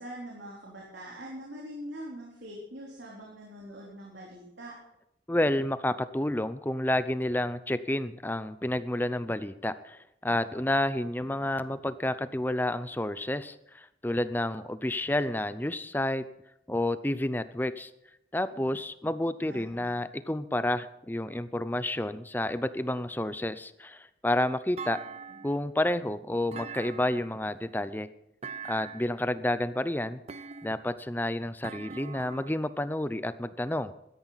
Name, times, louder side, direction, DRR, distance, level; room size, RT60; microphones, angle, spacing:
voice 1, 0.0-4.7 19.5-19.9 25.3-25.4, equal, 85° right, -3 dB, 3.7 m, -43 dB
voice 2, 5.3-16.2 16.7-17.9 18.3-25.0 25.4-28.1 28.7-30.2 30.6-33.9, left 1 dB, 10° left, 13 dB, 0.5 m, -30 dB
Thump thud, 24.8-25.7 26.5-27.4 28.4-29.2 30.3-31.0 31.6-32.7, right 5 dB, 35° right, 0.5 m, -42 dB
16.5 x 13.0 x 4.1 m, 0.81 s
head